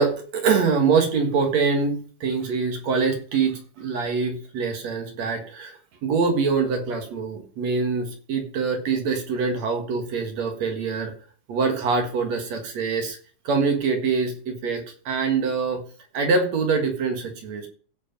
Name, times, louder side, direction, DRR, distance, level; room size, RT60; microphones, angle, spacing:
voice 1, 0.0-11.1 11.5-13.2 13.4-15.8 16.1-17.7, right 5 dB, 60° right, 4 dB, 2.8 m, -24 dB
15.5 x 5.2 x 5.3 m, 0.42 s
omnidirectional pair, 3.6 m